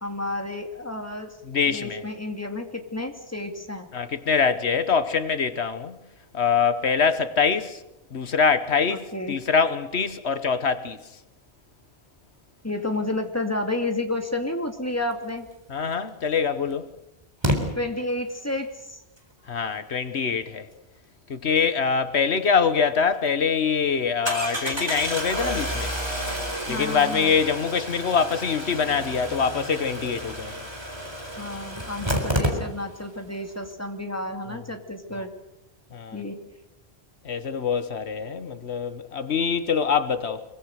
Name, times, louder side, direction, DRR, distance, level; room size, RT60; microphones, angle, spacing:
voice 1, 0.0-1.4 1.7-3.9 8.9-9.4 12.6-15.5 17.8-19.0 26.7-27.4 31.4-35.3 36.1-36.4, left 2 dB, 15° left, 2.3 m, -31 dB
voice 2, 1.4-2.0 3.9-6.0 6.3-7.8 8.1-11.0 15.7-16.9 19.5-20.7 21.3-25.9 26.7-30.5 34.5-34.6 35.1-35.3 35.9-36.2 37.2-40.4, left 6 dB, 85° left, 1.5 m, -24 dB
Engine starting, 15.9-16.0 17.4-17.6 22.6-22.7 23.1-23.2 24.3-33.1 33.3-33.4 33.6-33.7, equal, 25° right, 4.0 m, -30 dB
24.0 x 23.5 x 6.6 m
omnidirectional pair, 1.1 m